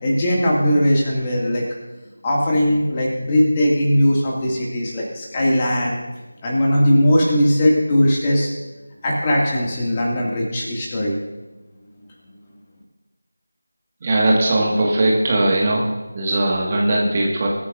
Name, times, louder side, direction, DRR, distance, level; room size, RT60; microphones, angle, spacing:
voice 1, 0.0-1.6 2.2-6.0 6.4-8.5 9.0-11.2, equal, 20° left, -3 dB, 2.3 m, -19 dB
voice 2, 14.0-15.8 16.1-17.5, right 1 dB, 25° right, -2 dB, 1.8 m, -19 dB
23.0 x 9.7 x 2.7 m, 1.1 s
figure-of-eight pair, 165°, 0 cm